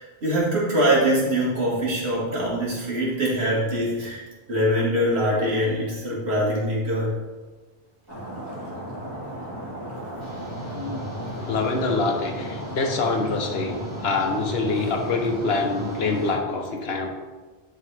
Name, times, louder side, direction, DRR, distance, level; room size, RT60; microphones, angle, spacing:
voice 1, 0.0-4.2 4.5-7.1, equal, 80° right, -5 dB, 2.1 m, -23 dB
Stream, 8.1-16.4, equal, 25° right, 1.8 m, -35 dB
sound 1, 10.2-16.3, right 1 dB, 40° right, 2.3 m, -38 dB
voice 2, 10.7-17.1, left 3 dB, 75° left, 3 dB, 1.2 m, -26 dB
10.5 x 4.0 x 3.3 m, 1.3 s
omnidirectional pair, 1.1 m